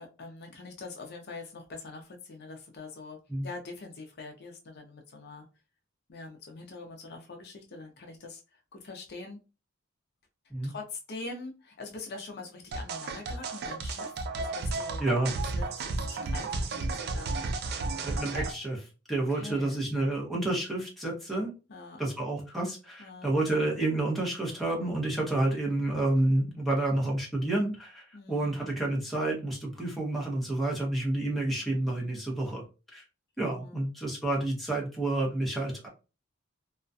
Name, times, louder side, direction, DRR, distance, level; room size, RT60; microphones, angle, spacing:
voice 1, 0.0-5.4 6.1-9.4 10.6-15.0 15.6-17.4 19.3-19.8 21.7-22.0 23.0-23.3 25.3-25.6 28.1-28.8 31.6-32.2 33.4-33.8, left 3 dB, 55° left, 3 dB, 0.5 m, -44 dB
sound 1, 12.7-18.5, right 3 dB, 55° right, 0.4 m, -33 dB
voice 2, 15.0-15.3 18.0-21.5 22.0-33.0 33.4-35.9, right 2 dB, ahead, -3 dB, 0.7 m, -29 dB
2.3 x 2.1 x 2.5 m, 0.31 s
head